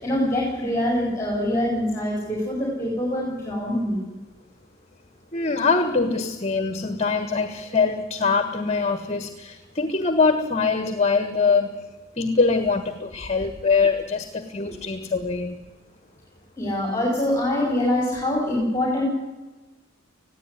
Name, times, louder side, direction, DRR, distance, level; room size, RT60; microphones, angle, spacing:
voice 1, 0.0-4.1 14.7-14.8 16.6-19.1, left 1 dB, 15° left, -2 dB, 5.3 m, -24 dB
voice 2, 5.3-11.8 12.2-15.6, left 4 dB, 30° left, 10 dB, 1.4 m, -23 dB
20.0 x 15.5 x 9.9 m, 1.2 s
head